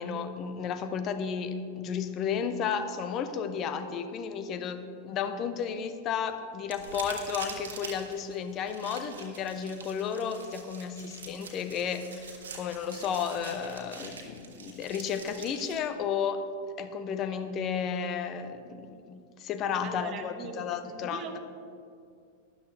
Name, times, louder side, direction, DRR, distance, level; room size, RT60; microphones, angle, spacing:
voice 1, 0.0-16.4 16.8-21.2, left 7 dB, 35° left, 9 dB, 0.8 m, -33 dB
sound 1, 6.7-15.8, right 4 dB, 65° right, 1.6 m, -45 dB
voice 2, 19.7-21.4, right 6 dB, 35° right, 7 dB, 1.1 m, -42 dB
12.5 x 11.5 x 3.4 m, 2.4 s
figure-of-eight pair, 90°, 0 cm